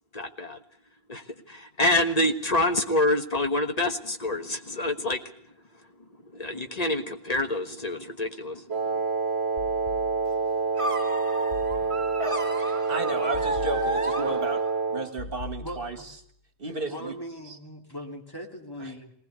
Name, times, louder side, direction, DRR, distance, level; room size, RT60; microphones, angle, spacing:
voice 1, 0.1-0.6 1.1-5.2 6.3-8.6 8.9-9.0, left 1 dB, 40° left, 7 dB, 1.5 m, -27 dB
Wind instrument woodwind instrument, 8.7-15.1, right 4 dB, 80° right, 1.4 m, -27 dB
sound 1, 9.6-10.6 11.5-12.4 13.3-14.4 15.2-16.2, left 4 dB, 60° left, 2.0 m, -41 dB
sound 2, 10.8-14.9, equal, 30° right, 1.4 m, -33 dB
voice 2, 12.6-14.6 14.9-16.0 16.6-17.1 17.5-17.6 18.8-18.9, right 2 dB, 65° right, 8 dB, 1.9 m, -33 dB
voice 3, 15.6-16.1 16.9-19.1, equal, 20° left, 1 dB, 3.0 m, -40 dB
19.5 x 19.0 x 8.2 m, 0.65 s
omnidirectional pair, 1.0 m